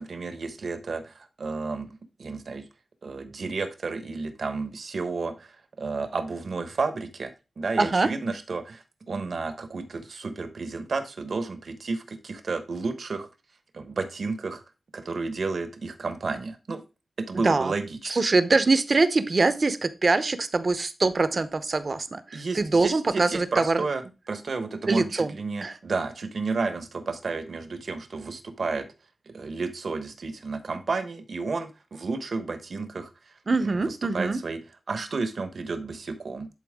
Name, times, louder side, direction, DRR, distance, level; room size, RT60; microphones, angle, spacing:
voice 1, 0.0-1.9 2.2-2.7 3.0-5.5 5.8-13.3 13.7-14.6 14.9-16.8 17.2-18.1 22.3-28.9 29.3-33.1 33.6-34.6 34.9-36.5, right 4 dB, 65° right, 9 dB, 1.0 m, -31 dB
voice 2, 7.8-8.1 17.4-17.7 18.0-23.8 24.9-25.3 25.6-25.8 33.5-34.4, right 3 dB, 45° right, 13 dB, 0.7 m, -23 dB
11.0 x 4.2 x 3.6 m, 0.29 s
wide cardioid pair, 95°, 0 cm